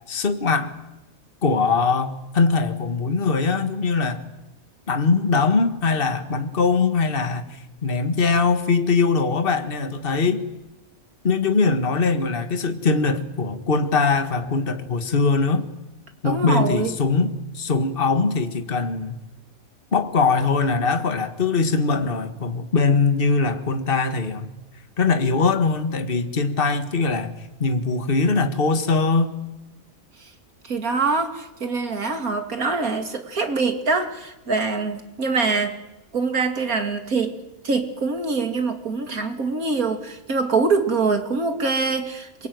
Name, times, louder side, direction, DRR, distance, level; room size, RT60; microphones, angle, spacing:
voice 1, 0.1-0.7 1.4-4.2 4.9-10.4 11.2-15.7 16.2-19.2 19.9-24.5 25.0-29.3, left 4 dB, 40° left, 7 dB, 1.9 m, -21 dB
voice 2, 16.2-16.9 30.2-30.3 30.6-35.8 36.1-37.4 37.6-42.5, right 4 dB, 85° right, 6 dB, 3.1 m, -24 dB
27.5 x 22.5 x 9.5 m, 1.0 s
omnidirectional pair, 1.5 m